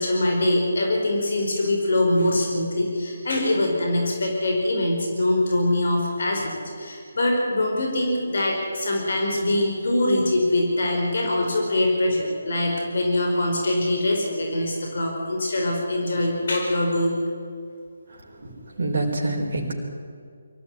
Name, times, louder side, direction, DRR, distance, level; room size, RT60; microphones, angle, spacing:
voice 1, 0.0-17.2, left 1 dB, 60° left, 1 dB, 5.0 m, -23 dB
voice 2, 18.1-19.7, right 2 dB, 55° right, 0 dB, 4.5 m, -27 dB
23.0 x 14.5 x 9.5 m, 2.2 s
figure-of-eight pair, 150°, 0 cm